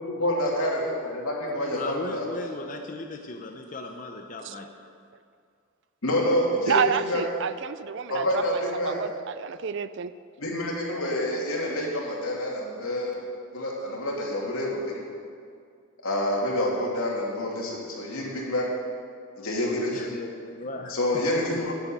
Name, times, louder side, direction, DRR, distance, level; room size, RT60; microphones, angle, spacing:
voice 1, 0.0-2.3 6.0-7.2 8.1-9.0 10.4-13.2 13.5-15.0 16.0-18.7 19.4-20.0 20.9-21.7, left 1 dB, 85° left, -3 dB, 2.9 m, -27 dB
voice 2, 1.7-4.7 19.9-21.2 21.5-21.7, left 2 dB, 35° left, 2 dB, 0.8 m, -37 dB
voice 3, 6.7-10.1, right 7 dB, 55° right, 14 dB, 0.4 m, -29 dB
11.0 x 7.7 x 9.0 m, 2.3 s
head